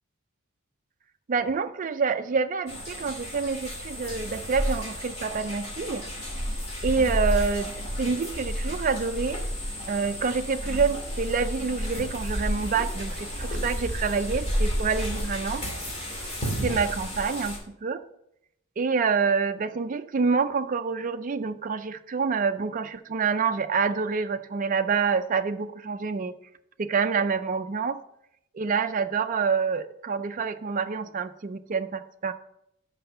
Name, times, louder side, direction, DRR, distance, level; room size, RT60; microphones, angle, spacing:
voice 1, 1.3-6.0 6.8-7.7 8.0-9.4 9.9-15.6 16.6-18.0 18.8-26.3 26.8-28.0 28.5-32.3, right 5 dB, 40° right, 9 dB, 0.4 m, -27 dB
sound 1, 2.7-17.6, equal, 30° left, 2.4 m, -31 dB
6.0 x 5.3 x 6.6 m, 0.78 s
head